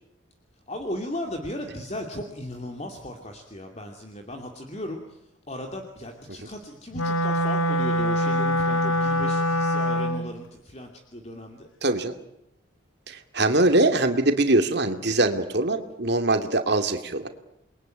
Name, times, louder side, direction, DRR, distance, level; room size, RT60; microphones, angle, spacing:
voice 1, 0.7-5.2 5.5-11.7, left 1 dB, 30° left, 3 dB, 2.6 m, -36 dB
Wind instrument woodwind instrument, 6.9-10.3, equal, 90° left, 1.7 m, -24 dB
voice 2, 11.8-12.2 13.1-17.3, right 2 dB, 55° right, 6 dB, 2.6 m, -22 dB
29.0 x 22.5 x 9.2 m, 0.82 s
head